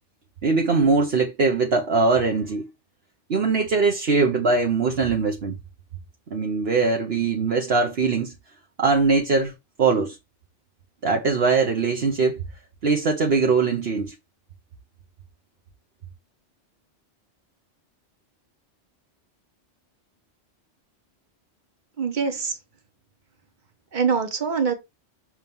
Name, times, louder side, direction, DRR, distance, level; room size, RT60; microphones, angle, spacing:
voice 1, 0.4-2.7 3.3-5.6 6.3-8.3 8.8-9.5 9.8-10.2 11.0-12.4 12.8-14.1, right 4 dB, 60° right, 1.2 m, -21 dB
voice 2, 22.0-22.6 23.9-24.7, right 6 dB, 40° right, 1.4 m, -24 dB
6.2 x 3.1 x 5.3 m
omnidirectional pair, 1.2 m